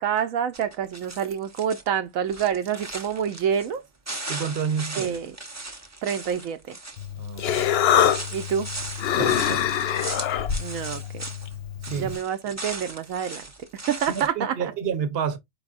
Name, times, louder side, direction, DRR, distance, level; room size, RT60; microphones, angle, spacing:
voice 1, 0.0-3.8 5.0-5.3 6.0-6.7 8.3-8.7 10.6-11.2 12.0-13.4 13.9-14.6, right 8 dB, 80° right, 1.0 m, -27 dB
sound 1, 0.5-1.9 2.2-3.8 4.0-11.5 11.8-14.3, right 2 dB, 15° right, 0.6 m, -38 dB
voice 2, 4.3-5.2 7.1-7.7 9.2-9.7 11.8-12.2 14.1-15.4, right 7 dB, 50° right, 1.0 m, -29 dB
Human voice, 7.0-12.2, left 9 dB, 60° left, 0.7 m, -25 dB
4.7 x 4.7 x 2.4 m
omnidirectional pair, 1.4 m